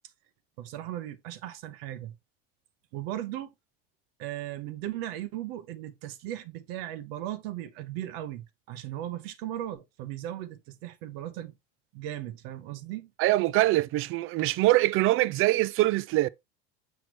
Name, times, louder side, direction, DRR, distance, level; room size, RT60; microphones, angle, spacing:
voice 1, 0.6-2.2 2.9-3.5 4.2-11.5 11.9-13.1, right 13 dB, 70° right, 0.8 m, -37 dB
voice 2, 13.2-16.3, right 18 dB, 45° right, 0.4 m, -23 dB
6.2 x 5.7 x 2.9 m
supercardioid pair, 110°, 31 cm